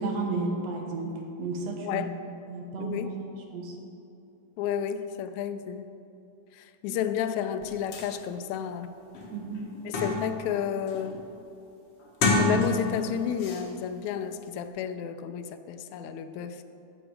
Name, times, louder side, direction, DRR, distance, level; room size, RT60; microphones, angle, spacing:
voice 1, 0.0-2.1 2.5-3.8 6.9-7.0 9.3-9.6, right 3 dB, 60° right, 1 dB, 2.0 m, -33 dB
voice 2, 1.8-2.1 2.8-3.1 4.6-5.9 6.5-9.0 9.8-11.2 12.4-16.6, left 9 dB, 80° left, 9 dB, 1.7 m, -31 dB
sound 1, 7.6-7.7 7.9-8.1 8.6-8.7 9.1-10.5 10.9-11.2 12.0-13.0 13.4-13.6, left 2 dB, 55° left, 2.0 m, -28 dB
13.5 x 8.0 x 4.8 m, 2.7 s
omnidirectional pair, 3.8 m